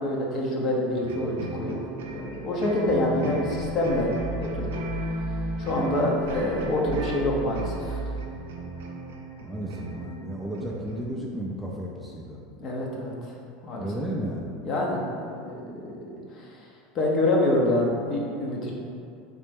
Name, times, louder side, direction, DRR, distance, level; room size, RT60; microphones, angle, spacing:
voice 1, 0.0-1.8 2.1-4.1 4.4-4.8 5.6-8.0 12.6-13.3 13.6-13.9 14.6-16.7 16.9-18.7, left 1 dB, 45° left, -2 dB, 0.7 m, -26 dB
sound 1, 1.0-11.1, equal, 90° right, 0.4 m, -36 dB
sound 2, 2.8-8.3, right 3 dB, 25° right, 0.9 m, -36 dB
voice 2, 9.4-12.4 13.8-14.6, equal, ahead, -4 dB, 0.4 m, -33 dB
3.2 x 3.0 x 3.5 m, 2.4 s
supercardioid pair, 120°, 0 cm